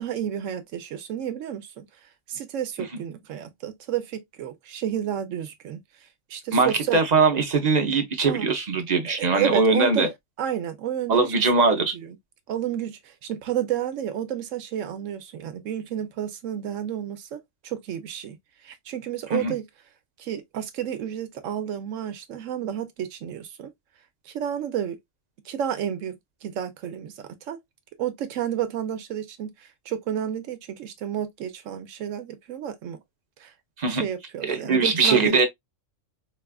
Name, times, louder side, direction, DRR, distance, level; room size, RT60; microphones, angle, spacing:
voice 1, 0.0-1.9 2.3-5.8 6.3-7.0 8.3-8.5 9.2-10.1 10.4-11.3 11.7-12.2 12.5-18.4 18.6-19.7 20.2-23.7 24.3-25.0 25.5-26.2 26.4-27.6 28.0-33.0 33.4-33.5 33.8-35.4, right 9 dB, 75° right, 1.0 m, -31 dB
voice 2, 6.5-10.1 11.1-11.9 19.3-19.5 33.8-34.1 34.5-35.5, right 4 dB, 40° right, 0.7 m, -21 dB
4.1 x 2.3 x 2.2 m
omnidirectional pair, 1.4 m